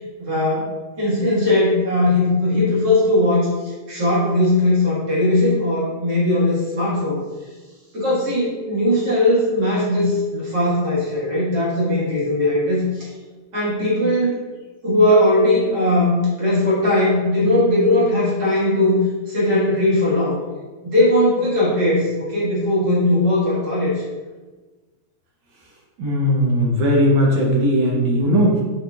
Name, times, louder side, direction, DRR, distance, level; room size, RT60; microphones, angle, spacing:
voice 1, 0.2-7.2 7.9-13.1 13.5-14.4 14.8-19.0 19.3-20.4 20.8-24.0, left 1 dB, 55° right, -8 dB, 2.3 m, -19 dB
voice 2, 26.0-28.6, equal, 70° right, -3 dB, 1.7 m, -18 dB
6.5 x 3.0 x 2.3 m, 1.3 s
omnidirectional pair, 2.3 m